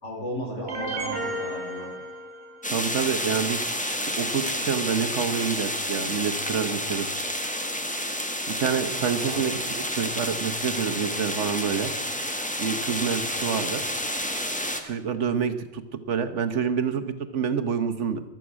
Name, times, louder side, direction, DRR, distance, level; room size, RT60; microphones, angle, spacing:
voice 1, 0.0-1.9 9.0-9.4, equal, 75° left, -2 dB, 5.3 m, -35 dB
sound 1, 0.7-2.8, right 2 dB, 50° right, 2.3 m, -33 dB
sound 2, 2.6-14.8, equal, 5° left, 1.3 m, -30 dB
voice 2, 2.7-7.1 8.5-11.9 12.6-13.8 14.8-18.2, right 6 dB, 80° right, 9 dB, 1.4 m, -28 dB
15.5 x 12.0 x 6.2 m, 0.99 s
omnidirectional pair, 1.2 m